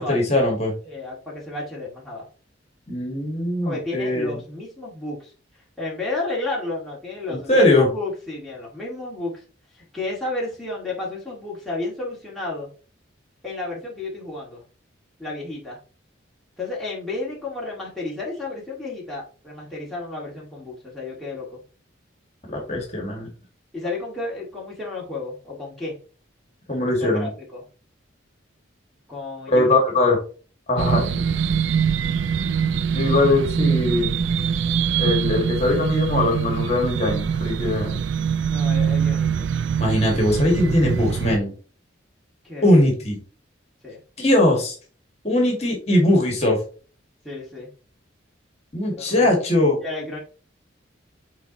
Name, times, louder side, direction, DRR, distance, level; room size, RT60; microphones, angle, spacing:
voice 1, 0.0-0.7 2.9-4.4 7.3-7.9 22.5-23.3 26.7-27.3 29.5-30.2 30.7-31.3 32.9-34.2 35.0-38.0 39.8-41.5 42.6-43.2 44.2-44.8 45.2-46.6 48.7-49.8, left 1 dB, 35° left, 0 dB, 2.0 m, -20 dB
voice 2, 0.9-2.3 3.6-5.3 5.8-9.4 9.7-12.7 13.4-14.6 15.2-15.8 16.6-21.6 23.7-26.0 27.0-27.6 29.1-29.7 30.8-31.4 38.5-39.6 42.4-42.7 43.8-44.0 47.2-47.7 48.9-49.4 49.8-50.2, left 2 dB, ahead, -6 dB, 2.0 m, -32 dB
sound 1, 30.8-41.4, right 7 dB, 65° right, 0.3 m, -23 dB
8.1 x 4.1 x 3.0 m, 0.37 s
head